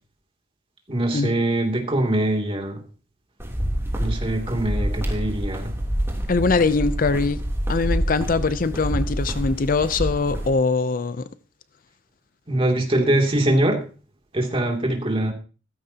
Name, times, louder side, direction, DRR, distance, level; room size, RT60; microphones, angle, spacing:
voice 1, 0.9-2.8 4.0-5.7 12.5-13.8 14.3-15.3, right 1 dB, 30° right, 2.7 m, -23 dB
sound 1, 3.4-10.5, equal, 15° right, 3.0 m, -27 dB
voice 2, 6.3-7.4 7.7-11.2, left 4 dB, 50° left, 0.5 m, -22 dB
16.0 x 14.0 x 2.9 m
head